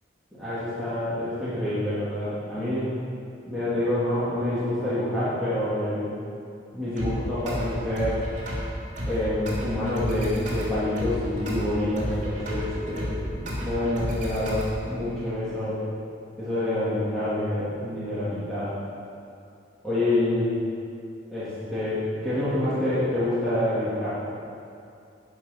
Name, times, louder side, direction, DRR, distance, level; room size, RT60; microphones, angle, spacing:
voice 1, 0.4-2.9 3.5-6.1 6.7-8.2 9.1-15.8 16.4-18.7 19.8-20.5 21.3-24.1, left 1 dB, ahead, -14 dB, 2.9 m, -27 dB
sound 1, 7.0-15.0, equal, 40° right, 3.1 m, -32 dB
18.5 x 6.2 x 6.1 m, 2.5 s
head